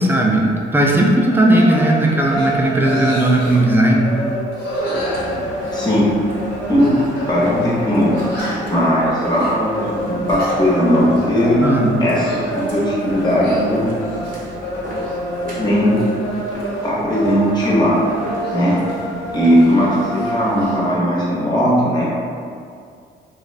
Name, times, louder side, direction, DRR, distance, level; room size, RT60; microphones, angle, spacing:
voice 1, 0.0-4.2 11.6-11.9, right 1 dB, 10° right, -1 dB, 0.3 m, -16 dB
sound 1, 1.3-21.0, equal, 80° left, 0.5 m, -27 dB
sound 2, 1.6-1.7 2.1-2.5 2.8-3.7 4.5-6.0 6.8-7.3 7.6-7.7 8.1-8.8 9.2-9.5 10.1-10.6 11.0-11.3 11.9-12.5 13.3-13.7 14.2-15.2 15.7-16.6 18.4-19.8 20.1-20.8, left 1 dB, 55° left, 0.9 m, -32 dB
sound 3, 4.9-20.7, right 1 dB, 45° right, 0.7 m, -34 dB
voice 2, 5.7-6.1 6.7-7.0 7.3-8.1 8.7-11.6 12.0-13.9 15.6-16.0 16.8-18.0 18.5-18.8 19.3-22.1, equal, 20° left, -6 dB, 0.7 m, -17 dB
2.5 x 2.0 x 2.4 m, 2.3 s
cardioid pair, 90°, 20 cm